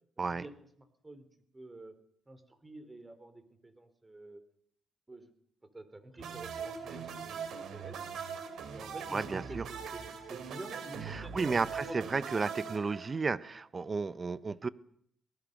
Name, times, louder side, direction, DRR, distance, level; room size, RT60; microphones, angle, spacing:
voice 1, 0.2-0.5 0.8-1.2 1.5-2.0 2.3-4.4 5.1-5.3 5.7-8.0 8.7-12.6, right 1 dB, 15° right, 11 dB, 3.5 m, -49 dB
sound 1, 6.2-13.5, right 6 dB, 70° right, 3.3 m, -41 dB
voice 2, 9.1-9.6 11.1-14.7, right 4 dB, 30° right, 16 dB, 1.0 m, -33 dB
24.0 x 19.0 x 6.7 m, 0.67 s
cardioid pair, 90°, 0 cm